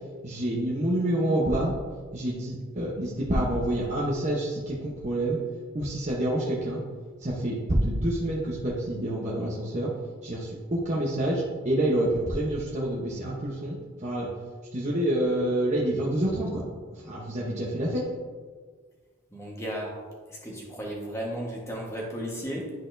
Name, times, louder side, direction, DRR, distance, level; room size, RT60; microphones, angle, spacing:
voice 1, 0.2-1.7 2.1-5.4 5.7-6.8 7.2-9.9 10.2-13.8 14.0-14.3 14.7-16.7 17.0-18.0, right 1 dB, 35° right, -5 dB, 0.8 m, -27 dB
voice 2, 19.3-20.0 20.3-22.7, equal, 15° left, -3 dB, 1.2 m, -34 dB
10.5 x 4.1 x 2.6 m, 1.5 s
head